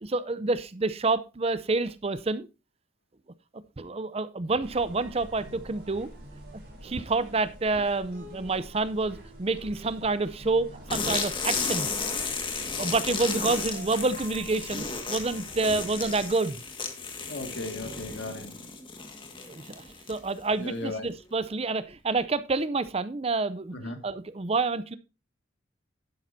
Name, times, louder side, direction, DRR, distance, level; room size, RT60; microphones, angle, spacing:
voice 1, 0.0-2.5 3.8-6.1 6.8-11.9 12.8-16.6 19.4-19.8 20.1-25.0, right 3 dB, 30° right, 0.5 m, -28 dB
sound 1, 4.6-16.3, right 1 dB, 50° right, 5.2 m, -47 dB
sound 2, 10.9-20.4, left 4 dB, 25° left, 1.7 m, -33 dB
voice 2, 17.2-18.6 20.6-21.1 23.7-24.0, left 2 dB, 65° left, 2.1 m, -36 dB
11.5 x 10.5 x 2.7 m
head